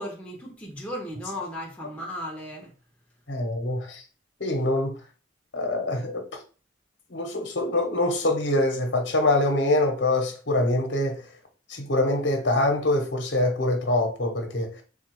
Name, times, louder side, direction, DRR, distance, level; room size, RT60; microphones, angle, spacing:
voice 1, 0.0-2.7, equal, 5° left, 0.8 m, -35 dB
voice 2, 3.3-4.0 4.4-5.0 5.5-6.2 7.1-11.2 11.7-14.7, left 1 dB, 70° left, 1.0 m, -24 dB
3.9 x 2.4 x 4.6 m
head